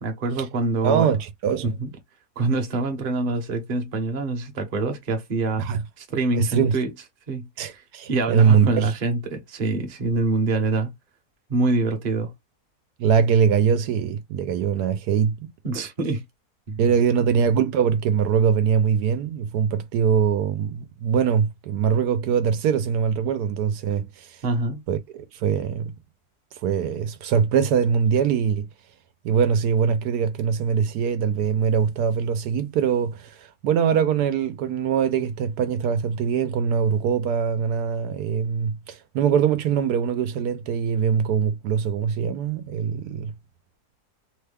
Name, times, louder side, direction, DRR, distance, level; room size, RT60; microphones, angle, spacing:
voice 1, 0.0-1.1 1.6-1.9 2.4-5.7 6.0-6.9 7.3-7.8 8.1-10.9 11.5-12.3 15.6-16.2 16.7-16.9 24.4-24.8, right 3 dB, 40° right, 0.9 m, -25 dB
voice 2, 0.8-1.7 5.6-5.8 6.3-6.7 7.6-8.9 13.0-15.4 16.8-24.4 24.9-25.9 26.6-28.7 29.2-43.3, right 7 dB, 80° right, 1.1 m, -22 dB
3.1 x 2.2 x 3.3 m
omnidirectional pair, 1.7 m